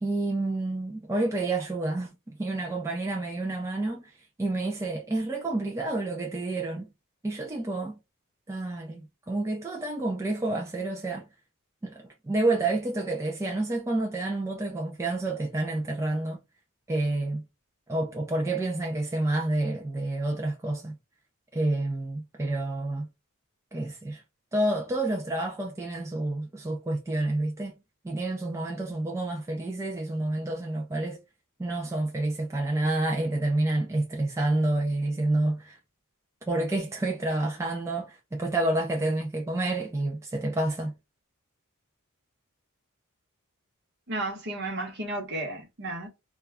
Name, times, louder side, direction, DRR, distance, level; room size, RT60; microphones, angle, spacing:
voice 1, 0.0-6.9 7.2-8.0 8.5-11.3 11.8-16.4 16.9-17.4 17.9-21.0 21.5-23.1 23.7-24.2 24.5-27.8 28.0-31.2 31.6-35.8 36.5-40.9, right 2 dB, 15° right, 0.3 m, -29 dB
voice 2, 44.1-46.1, right 2 dB, 50° right, 1.0 m, -33 dB
2.3 x 2.2 x 3.2 m
head